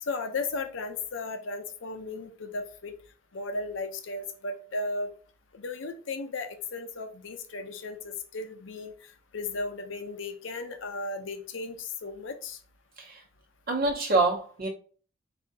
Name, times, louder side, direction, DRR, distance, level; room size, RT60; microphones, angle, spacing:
voice 1, 0.0-3.0 3.3-5.1 5.5-8.9 9.3-12.6, left 3 dB, 70° left, 7 dB, 0.6 m, -35 dB
voice 2, 13.7-14.7, right 3 dB, 50° right, 0 dB, 0.7 m, -26 dB
4.2 x 2.7 x 3.5 m, 0.40 s
head